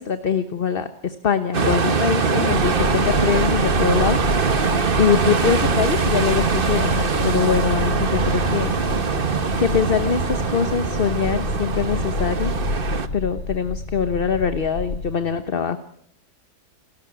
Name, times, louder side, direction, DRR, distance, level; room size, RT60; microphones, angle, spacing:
voice 1, 0.0-8.7 9.2-12.5 13.1-15.8, left 7 dB, 40° left, 10 dB, 1.1 m, -23 dB
sound 1, 1.5-13.1, right 5 dB, 35° right, 1.3 m, -22 dB
sound 2, 2.5-15.2, left 3 dB, 70° left, 2.4 m, -30 dB
Bass guitar, 8.2-14.4, right 3 dB, 20° left, 5.8 m, -37 dB
29.5 x 13.5 x 9.8 m, 0.70 s
omnidirectional pair, 1.8 m